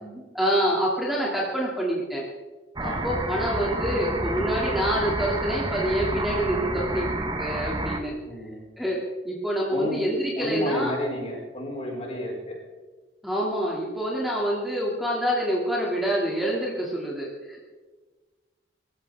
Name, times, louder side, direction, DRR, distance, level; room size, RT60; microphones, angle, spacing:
voice 1, 0.0-2.2 2.8-8.1 8.8-10.9 13.2-17.6, equal, ahead, -5 dB, 2.3 m, -27 dB
voice 2, 2.8-3.2 8.2-8.7 9.7-10.0 10.4-12.6, equal, 35° left, -2 dB, 4.9 m, -31 dB
sound 1, 2.8-8.0, right 2 dB, 25° right, 1.1 m, -29 dB
24.5 x 14.0 x 3.5 m, 1.3 s
head